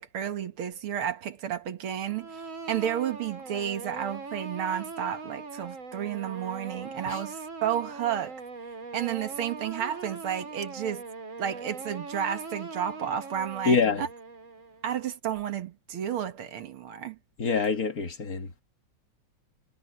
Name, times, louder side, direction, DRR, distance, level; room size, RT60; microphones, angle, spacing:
voice 1, 0.0-8.4 8.9-11.0 11.4-14.1 14.8-17.2, right 9 dB, 90° right, 2.3 m, -32 dB
sound 1, 2.0-14.9, right 4 dB, 70° right, 4.5 m, -41 dB
voice 2, 13.7-14.0 17.4-18.5, left 5 dB, 45° left, 1.7 m, -25 dB
omnidirectional pair, 2.3 m